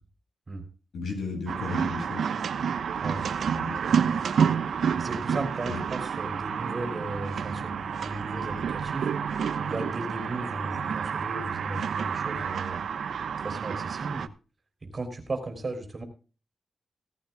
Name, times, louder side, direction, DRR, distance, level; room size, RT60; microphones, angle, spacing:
voice 1, 0.9-2.5 3.3-3.7 4.1-4.3 5.7-5.8, left 4 dB, 90° left, 3 dB, 7.4 m, -35 dB
sound 1, 1.5-14.3, right 7 dB, 75° right, 1.0 m, -29 dB
voice 2, 5.0-9.1 9.6-12.8 13.4-14.3 14.8-16.0, right 2 dB, 30° right, 6 dB, 3.5 m, -35 dB
17.5 x 14.5 x 2.3 m, 0.35 s
wide cardioid pair, 170°, 0 cm